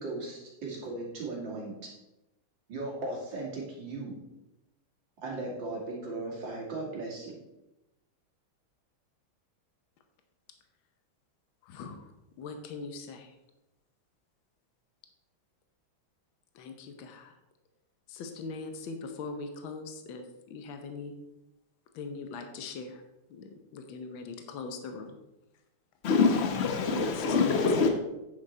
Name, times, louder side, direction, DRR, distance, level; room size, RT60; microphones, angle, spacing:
voice 1, 0.0-1.7 2.7-4.1 5.2-7.4, right 2 dB, 65° right, 3.0 m, -37 dB
voice 2, 11.7-12.0 12.4-13.3 16.5-17.3 18.1-21.1 21.9-23.0 23.3-25.2 27.1-27.6, left 4 dB, 75° left, 1.7 m, -41 dB
voice 3, 26.0-27.9, left 4 dB, 40° left, 1.2 m, -25 dB
9.5 x 6.4 x 4.3 m
omnidirectional pair, 2.3 m